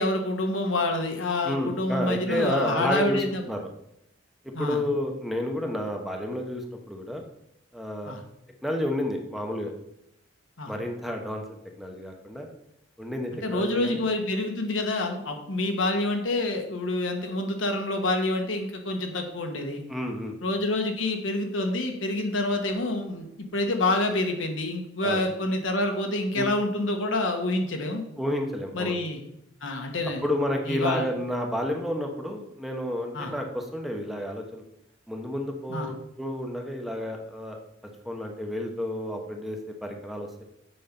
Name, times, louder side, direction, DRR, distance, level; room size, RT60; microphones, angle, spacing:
voice 1, 0.0-3.4 4.5-4.8 8.1-8.2 10.6-10.7 13.4-19.8 20.4-28.0 28.7-29.2 29.6-30.2 30.7-31.0 33.1-33.3 35.7-35.9, left 2 dB, 85° left, 3 dB, 1.4 m, -27 dB
voice 2, 1.4-3.7 4.6-7.2 7.7-8.1 8.6-9.7 10.7-12.5 13.0-14.0 19.9-20.4 25.0-25.2 26.3-26.5 28.2-29.0 30.2-34.6 35.1-37.6 38.0-40.4, left 1 dB, ahead, 2 dB, 0.9 m, -30 dB
7.7 x 5.5 x 5.2 m, 0.79 s
head